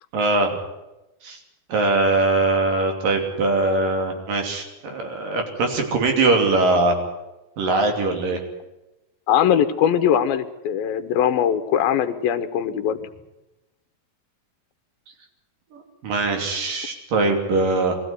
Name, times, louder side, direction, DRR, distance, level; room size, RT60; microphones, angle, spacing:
voice 1, 0.1-0.6 1.2-1.4 1.7-7.0 7.6-8.4 15.7-18.0, right 2 dB, 65° right, 4 dB, 4.6 m, -21 dB
voice 2, 9.3-13.0, left 9 dB, 80° left, 9 dB, 2.9 m, -21 dB
23.0 x 15.0 x 9.6 m, 0.98 s
omnidirectional pair, 4.2 m